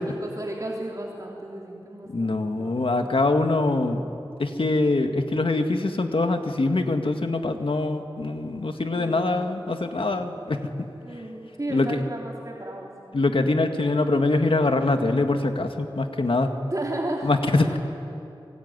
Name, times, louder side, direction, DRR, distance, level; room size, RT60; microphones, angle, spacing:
voice 1, 0.0-2.8 8.9-9.4 11.0-12.9 16.7-17.8, right 1 dB, 40° right, -2 dB, 3.3 m, -34 dB
voice 2, 2.1-4.0 4.4-10.7 11.7-12.0 13.1-16.6 17.2-17.8, left 2 dB, 80° left, 6 dB, 2.0 m, -24 dB
26.0 x 23.0 x 9.7 m, 2.8 s
wide cardioid pair, 55°, 9 cm